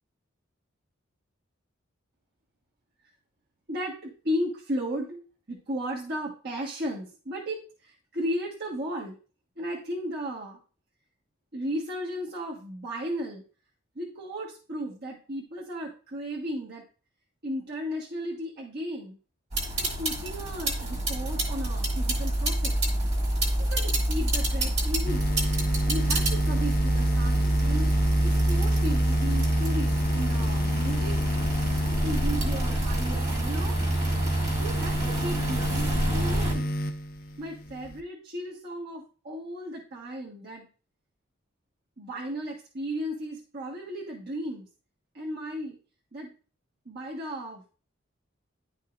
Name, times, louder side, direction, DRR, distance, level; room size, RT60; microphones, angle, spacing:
voice 1, 3.7-5.2 5.5-9.2 9.6-10.6 11.5-13.4 13.9-16.8 17.4-19.2 19.7-22.8 23.6-25.3 25.9-27.9 28.2-31.2 32.0-33.8 34.6-36.7 37.4-40.7 42.0-44.6 45.1-45.8 46.1-46.3 46.8-47.6, equal, 55° right, -4 dB, 1.5 m, -35 dB
sound 1, 19.5-36.5, right 1 dB, 35° right, 2.0 m, -26 dB
sound 2, 25.1-38.0, equal, 50° left, 0.6 m, -30 dB
10.5 x 5.3 x 2.6 m, 0.37 s
head